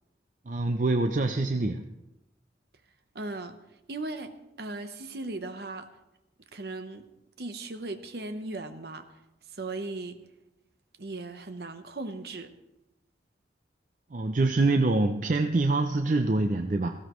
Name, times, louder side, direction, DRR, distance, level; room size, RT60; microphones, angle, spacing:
voice 1, 0.5-1.8 14.1-16.9, right 2 dB, 45° right, 6 dB, 0.5 m, -25 dB
voice 2, 3.1-3.6 3.9-5.9 6.5-7.1 7.4-9.1 9.5-10.2 11.0-12.5, right 2 dB, 60° right, 8 dB, 0.9 m, -37 dB
17.5 x 15.5 x 3.1 m, 0.93 s
head